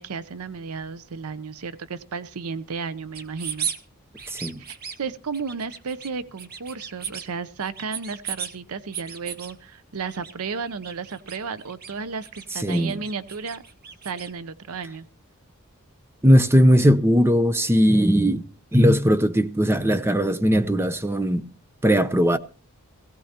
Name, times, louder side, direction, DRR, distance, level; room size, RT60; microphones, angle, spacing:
voice 1, 0.0-3.7 4.6-13.6 14.0-15.1, right 5 dB, 75° right, 0.6 m, -33 dB
sound 1, 3.1-3.8 4.1-5.0 5.3-6.1 6.4-7.3 7.6-8.5 8.9-9.5 10.1-10.3 10.6-11.9 12.2-14.3, right 7 dB, 45° right, 1.1 m, -35 dB
voice 2, 4.3-4.6 12.6-13.0 16.2-18.4 18.7-21.5 21.8-22.4, equal, 10° right, 0.6 m, -19 dB
18.0 x 16.0 x 2.9 m
head